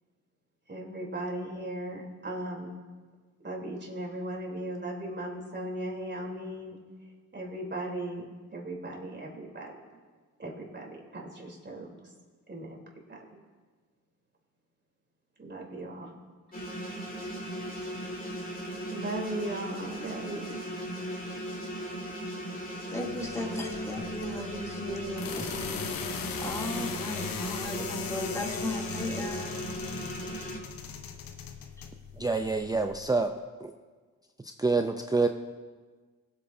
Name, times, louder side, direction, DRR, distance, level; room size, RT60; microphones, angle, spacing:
voice 1, 0.7-2.8 3.4-6.8 7.3-9.7 10.4-11.9 12.5-12.8 13.1-13.4 15.4-16.1 18.9-20.6, right 1 dB, 30° right, -1 dB, 3.4 m, -37 dB
sound 1, 16.5-30.6, equal, 25° left, 2.6 m, -37 dB
voice 2, 22.8-29.6 31.8-31.9, left 1 dB, 10° left, -2 dB, 2.7 m, -36 dB
sound 2, 23.0-33.1, left 7 dB, 75° left, 1.0 m, -40 dB
voice 3, 32.2-33.7 34.6-35.3, right 3 dB, 10° right, 6 dB, 0.5 m, -27 dB
20.5 x 8.5 x 2.7 m, 1.4 s
supercardioid pair, 60°, 35 cm